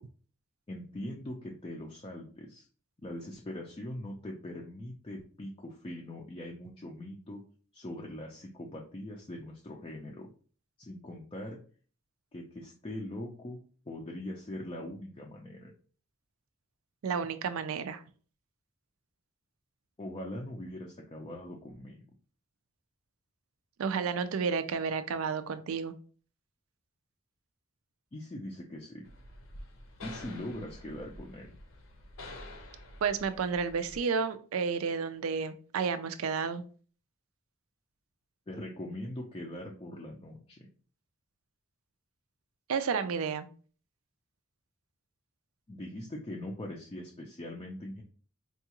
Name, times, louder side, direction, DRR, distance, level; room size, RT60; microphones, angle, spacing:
voice 1, 0.7-2.7 3.0-7.4 7.7-10.3 10.8-11.6 12.3-13.6 13.9-15.7 20.0-22.0 28.1-29.1 30.0-31.5 38.5-40.7 45.7-48.0, left 1 dB, 25° left, -1 dB, 0.4 m, -41 dB
voice 2, 17.0-18.0 23.8-25.9 33.0-36.6 42.7-43.5, right 5 dB, 70° right, 11 dB, 0.4 m, -31 dB
sound 1, 29.0-34.0, left 1 dB, 65° left, 0.7 m, -48 dB
4.5 x 2.4 x 2.9 m, 0.42 s
head